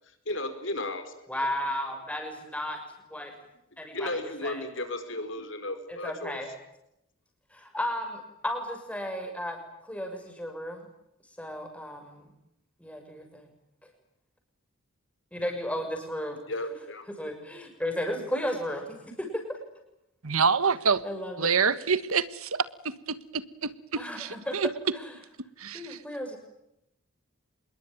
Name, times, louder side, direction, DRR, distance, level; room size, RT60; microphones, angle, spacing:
voice 1, 0.2-1.2 3.9-6.4 16.5-17.1, left 1 dB, 60° left, 8 dB, 4.9 m, -34 dB
voice 2, 1.3-2.8 3.1-3.3 3.8-4.6 5.9-6.5 7.5-9.6 9.8-10.9 11.4-12.3 12.8-13.5 15.3-16.4 17.1-19.6 21.0-21.5 24.0-24.6 24.9-25.1 25.7-26.4, equal, 5° left, 4 dB, 6.5 m, -34 dB
voice 3, 20.2-21.0 21.4-24.7 25.6-26.0, right 5 dB, 80° right, 14 dB, 1.4 m, -27 dB
27.0 x 22.0 x 9.1 m, 0.82 s
head